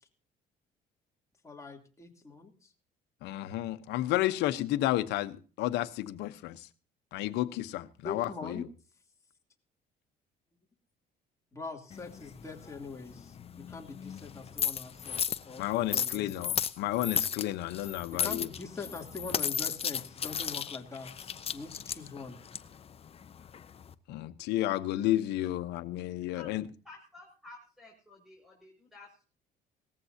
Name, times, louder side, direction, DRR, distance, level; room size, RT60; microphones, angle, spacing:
voice 1, 1.4-2.7 8.0-8.7 11.5-15.2 15.5-15.6 15.9-16.6 17.8-22.5, left 4 dB, 15° left, 3.0 m, -43 dB
voice 2, 3.2-6.7 7.1-8.6 15.6-18.5 24.1-26.6, left 14 dB, 85° left, 1.0 m, -32 dB
sound 1, 11.9-23.9, left 8 dB, 35° left, 0.8 m, -35 dB
voice 3, 26.8-29.2, left 2 dB, ahead, 5.9 m, -52 dB
18.5 x 14.5 x 2.8 m
cardioid pair, 110°, 17 cm